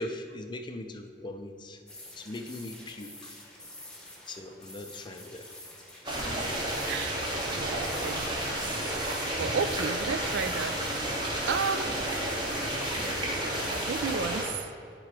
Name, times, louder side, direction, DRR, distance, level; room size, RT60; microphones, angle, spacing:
voice 1, 0.0-1.8 2.2-3.1 4.3-5.5, left 1 dB, 25° left, 6 dB, 0.5 m, -39 dB
sound 1, 1.9-14.4, left 1 dB, 5° left, 1.1 m, -48 dB
sound 2, 6.0-14.4, right 1 dB, 25° right, 1.4 m, -31 dB
voice 2, 6.8-7.2 7.5-9.0 9.3-11.2 11.5-12.0 13.7-14.7, right 6 dB, 70° right, 11 dB, 0.3 m, -33 dB
11.0 x 3.8 x 4.8 m, 2.2 s
head